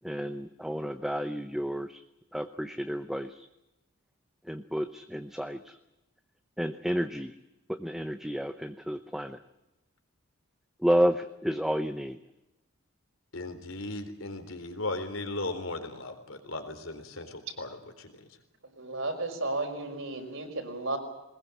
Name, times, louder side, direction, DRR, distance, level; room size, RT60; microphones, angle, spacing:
voice 1, 0.0-2.0 2.3-3.3 4.5-5.8 6.6-7.3 7.7-9.4 10.8-12.2, equal, ahead, 8 dB, 0.8 m, -30 dB
voice 2, 13.3-18.3, left 2 dB, 70° left, 7 dB, 4.0 m, -37 dB
voice 3, 18.8-21.0, right 2 dB, 65° right, 4 dB, 5.5 m, -33 dB
22.0 x 20.5 x 8.5 m, 0.95 s
head